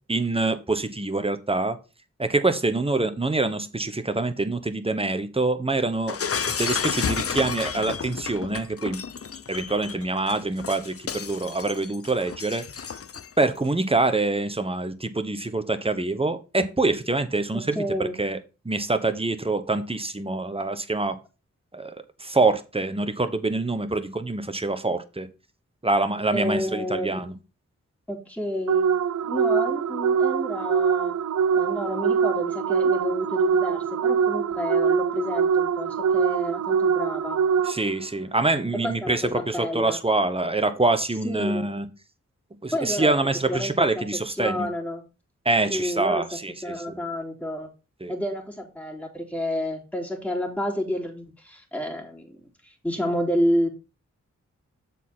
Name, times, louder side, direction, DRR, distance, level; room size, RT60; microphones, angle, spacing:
voice 1, 0.1-1.8 2.2-6.2 6.6-9.0 9.5-12.6 13.4-18.4 18.6-21.2 21.7-25.3 25.8-27.3 37.6-41.9 42.6-44.7 45.4-47.0 48.0-48.1, right 2 dB, 20° right, 1.2 m, -25 dB
Shatter, 6.1-13.4, left 6 dB, 50° left, 0.6 m, -31 dB
voice 2, 17.5-18.2 26.3-27.2 28.1-28.9 29.3-31.1 31.5-37.4 38.8-40.0 41.2-41.7 42.7-43.2 43.5-44.0 44.3-45.0 45.7-46.2 46.6-47.7 48.1-52.4 52.6-53.7, equal, 5° left, 2.9 m, -29 dB
sound 1, 28.7-38.1, right 6 dB, 65° right, 0.5 m, -23 dB
7.3 x 4.3 x 5.7 m
cardioid pair, 55°, 30 cm